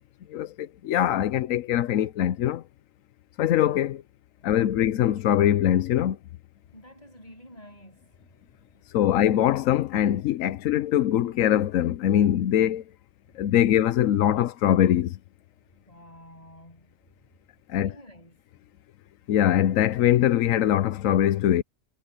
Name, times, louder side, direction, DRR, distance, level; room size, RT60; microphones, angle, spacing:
voice 1, 0.8-2.6 3.4-4.0 4.4-6.2 8.9-12.8 13.4-15.1 17.7-17.9 19.3-21.6, left 11 dB, 85° left, 1.1 m, -22 dB
voice 2, 6.6-9.0 13.3-13.6 15.8-16.9 17.8-18.4, equal, 30° left, 7.4 m, -51 dB
omnidirectional pair, 1.4 m